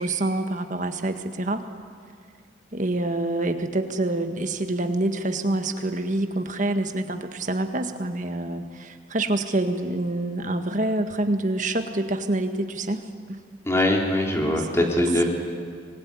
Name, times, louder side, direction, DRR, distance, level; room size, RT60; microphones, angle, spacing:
voice 1, 0.0-1.7 2.7-13.0 13.3-13.4 14.4-15.2, right 2 dB, 40° right, 7 dB, 1.7 m, -27 dB
voice 2, 13.7-15.2, left 1 dB, 15° left, 1 dB, 3.2 m, -22 dB
25.5 x 20.5 x 9.8 m, 2.1 s
head